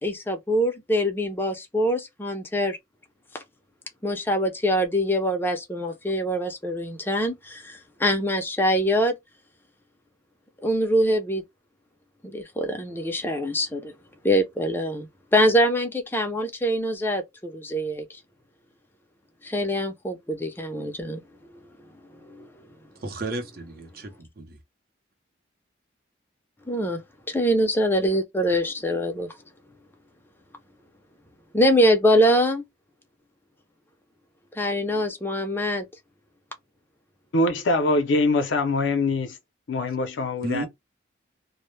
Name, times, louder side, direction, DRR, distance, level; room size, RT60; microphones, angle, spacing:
voice 1, 0.0-2.8 3.3-3.4 4.0-9.2 10.6-11.4 12.2-13.9 14.2-18.1 19.4-21.2 22.3-22.5 26.7-27.0 27.3-29.3 31.5-32.6 34.5-35.9, equal, 10° left, 0.5 m, -24 dB
voice 2, 23.0-24.6 40.4-40.7, right 2 dB, 50° right, 0.6 m, -33 dB
voice 3, 37.3-39.3 39.7-40.7, left 2 dB, 75° left, 0.5 m, -23 dB
2.1 x 2.1 x 3.0 m
head